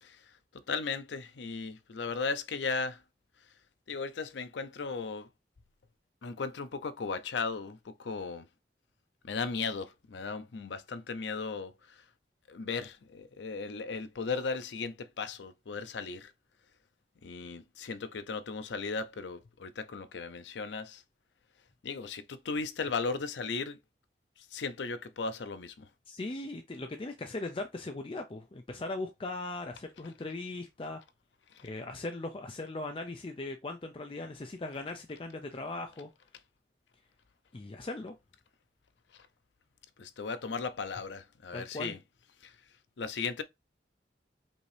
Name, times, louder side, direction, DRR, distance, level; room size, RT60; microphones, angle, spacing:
voice 1, 0.0-3.0 3.9-5.3 6.2-8.5 9.2-12.0 12.5-16.3 17.2-21.0 21.8-23.8 24.4-25.9 31.5-31.7 39.1-39.3 40.0-42.0 42.4-42.6 43.0-43.4, left 4 dB, 85° left, 0.5 m, -36 dB
voice 2, 26.1-31.0 31.6-36.1 37.5-38.1 41.5-42.0, left 2 dB, 30° left, 0.5 m, -39 dB
5.2 x 2.7 x 3.3 m
head